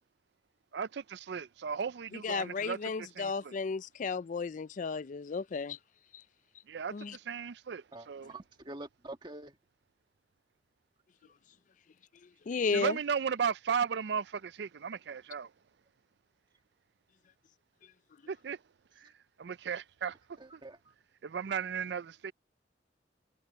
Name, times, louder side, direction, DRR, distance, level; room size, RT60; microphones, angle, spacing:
voice 1, 0.7-3.5 6.7-8.3 12.7-15.5 18.3-18.6 19.0-19.1 19.4-20.2 20.5-20.6 21.2-22.3, right 6 dB, 65° right, 0.4 m, -35 dB
voice 2, 2.2-5.8 6.9-7.2 12.5-13.0, left 4 dB, 45° left, 0.4 m, -33 dB
voice 3, 7.9-9.6 11.2-11.3 20.4-20.8, right 2 dB, 25° right, 2.0 m, -46 dB
head